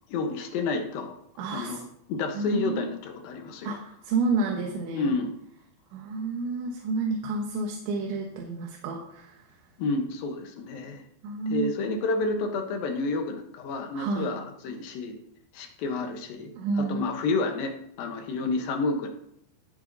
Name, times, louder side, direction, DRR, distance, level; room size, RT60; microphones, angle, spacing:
voice 1, 0.1-1.1 1.5-3.7 4.9-5.3 9.8-11.0 11.5-15.2 15.5-16.5 16.9-19.1, left 3 dB, 70° left, 3 dB, 2.3 m, -30 dB
voice 2, 1.4-1.8 2.3-2.9 3.6-5.1 5.9-9.5 11.2-11.7 13.9-14.3 16.6-17.1, right 3 dB, 85° right, 1 dB, 3.5 m, -30 dB
17.5 x 8.0 x 2.7 m, 0.74 s
omnidirectional pair, 5.1 m